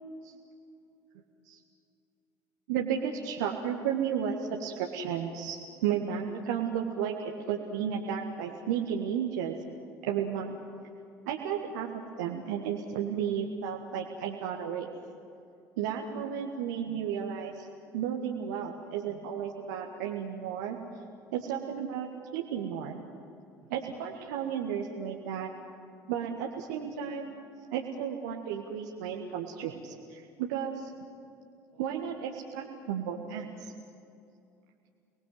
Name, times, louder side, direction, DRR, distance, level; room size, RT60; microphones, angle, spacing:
voice 1, 2.7-9.6 10.0-10.5 11.2-14.9 15.8-17.7 17.9-20.8 21.3-23.0 23.7-25.5 26.1-27.3 27.7-30.9 31.7-33.7, right 8 dB, 65° right, 1 dB, 1.7 m, -33 dB
30.0 x 20.0 x 7.9 m, 2.6 s
figure-of-eight pair, 60°, 10 cm